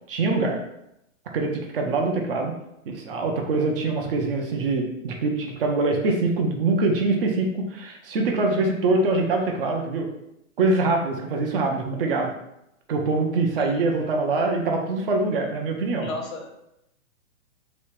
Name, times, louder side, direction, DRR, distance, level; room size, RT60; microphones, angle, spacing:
voice 1, 0.1-0.6 1.3-2.5 2.9-10.1 10.6-12.3 12.9-16.1, right 3 dB, 45° right, 2 dB, 0.6 m, -24 dB
voice 2, 16.0-16.6, left 2 dB, 85° left, 2 dB, 1.0 m, -35 dB
3.1 x 2.5 x 3.1 m, 0.83 s
hypercardioid pair, 145°, 40 cm